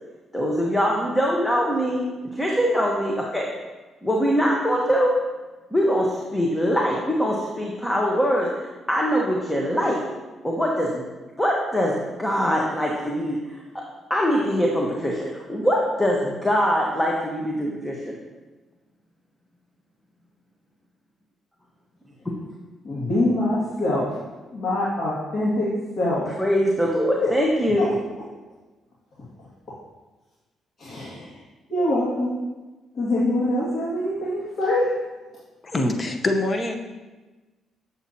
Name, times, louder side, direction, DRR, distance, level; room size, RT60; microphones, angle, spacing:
voice 1, 0.3-3.5 4.0-5.1 5.7-10.0 10.4-11.0 11.4-13.8 14.1-18.1 26.4-27.9, equal, 10° left, -2 dB, 1.1 m, -23 dB
voice 2, 22.8-24.2 24.5-25.7 26.0-26.4 27.2-27.3 27.8-27.9 30.8-31.4 31.7-32.4 32.9-34.9, left 1 dB, 50° left, -9 dB, 2.0 m, -24 dB
voice 3, 35.7-36.8, left 2 dB, 30° left, 5 dB, 0.8 m, -24 dB
8.0 x 7.0 x 2.8 m, 1.2 s
cardioid pair, 90°, 0 cm